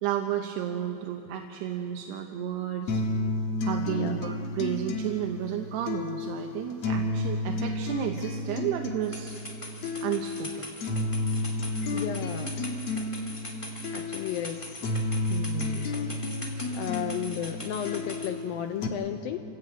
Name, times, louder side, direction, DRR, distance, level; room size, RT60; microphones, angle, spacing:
voice 1, 0.0-3.0 3.6-9.4 10.0-10.7 15.3-15.8, right 10 dB, 80° right, 4 dB, 3.0 m, -32 dB
sound 1, 2.9-18.9, left 2 dB, 55° left, 2.0 m, -32 dB
voice 2, 3.9-4.3 11.9-12.6 13.9-14.8 16.7-19.4, left 10 dB, 85° left, 7 dB, 2.1 m, -34 dB
sound 2, 9.0-18.3, left 1 dB, 10° left, 1.7 m, -42 dB
27.5 x 16.0 x 8.8 m, 2.9 s
omnidirectional pair, 4.9 m